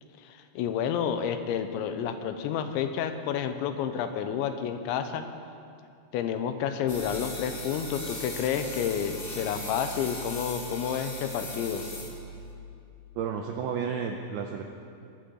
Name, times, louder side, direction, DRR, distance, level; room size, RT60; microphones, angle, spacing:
voice 1, 0.2-5.3 6.1-11.8, left 8 dB, 80° left, 8 dB, 3.0 m, -30 dB
sound 1, 6.9-12.5, equal, 40° left, 1.2 m, -38 dB
voice 2, 13.2-14.6, right 7 dB, 85° right, 3 dB, 2.2 m, -32 dB
23.0 x 10.0 x 3.9 m, 2.5 s
omnidirectional pair, 5.3 m